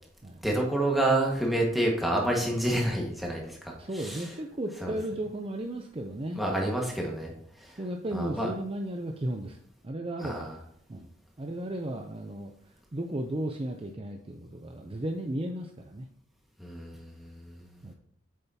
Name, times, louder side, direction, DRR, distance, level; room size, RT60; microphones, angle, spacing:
voice 1, 0.4-4.3 4.8-4.9 6.3-7.3 7.6-7.8 8.1-8.5 10.2-10.6 16.6-17.7, right 1 dB, ahead, -2 dB, 1.6 m, -29 dB
voice 2, 3.8-6.4 7.8-9.6 9.8-10.5 10.9-11.1 11.4-12.5 12.9-16.1 17.8-17.9, right 1 dB, 30° right, 4 dB, 0.5 m, -34 dB
8.4 x 6.8 x 2.8 m, 0.66 s
head